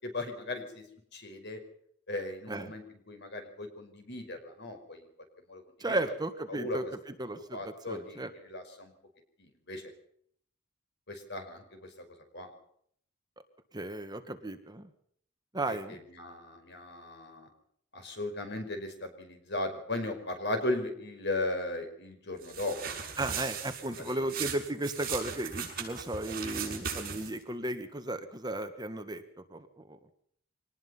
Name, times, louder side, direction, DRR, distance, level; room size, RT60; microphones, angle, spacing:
voice 1, 0.0-0.8 1.1-1.6 2.1-5.0 5.5-6.0 6.5-6.9 7.5-8.2 8.5-8.9 9.4-9.9 11.1-12.1 12.3-12.5 15.7-17.5 17.9-23.1 24.0-24.5, left 2 dB, 60° left, 6 dB, 5.3 m, -37 dB
voice 2, 5.8-8.3 13.7-14.9 15.5-16.0 23.2-29.2 29.5-30.0, right 1 dB, 20° right, 8 dB, 1.6 m, -35 dB
sound 1, 22.4-27.4, right 7 dB, 50° right, 6.5 m, -38 dB
24.0 x 19.5 x 5.6 m, 0.65 s
head